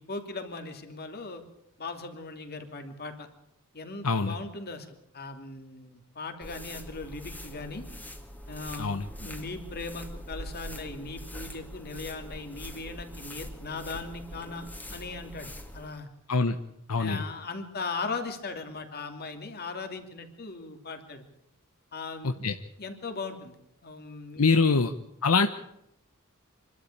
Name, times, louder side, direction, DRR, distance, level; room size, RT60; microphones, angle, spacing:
voice 1, 0.0-1.4 1.8-3.3 3.7-7.9 8.5-16.1 17.0-21.3 21.9-22.5 22.8-24.8, left 3 dB, 45° left, 6 dB, 2.8 m, -39 dB
sound 1, 6.4-16.0, equal, 10° left, 2.0 m, -43 dB
voice 2, 16.9-17.2 22.4-22.5 24.4-24.9 25.2-25.5, left 4 dB, 80° left, 8 dB, 1.0 m, -23 dB
26.0 x 12.5 x 8.6 m, 0.79 s
head